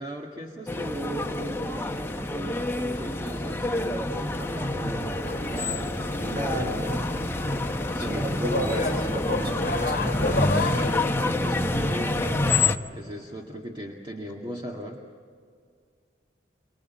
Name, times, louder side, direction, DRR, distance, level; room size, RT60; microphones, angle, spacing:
voice 1, 0.0-7.0 7.9-8.9 11.4-15.0, right 1 dB, 25° right, 0 dB, 1.9 m, -37 dB
sound 1, 0.7-12.7, left 2 dB, 10° left, 0.9 m, -28 dB
sound 2, 5.2-11.1, left 3 dB, 50° left, 1.5 m, -32 dB
voice 2, 6.3-7.1 8.1-10.7, right 1 dB, 55° right, 3 dB, 5.0 m, -33 dB
29.0 x 25.0 x 7.4 m, 2.1 s
head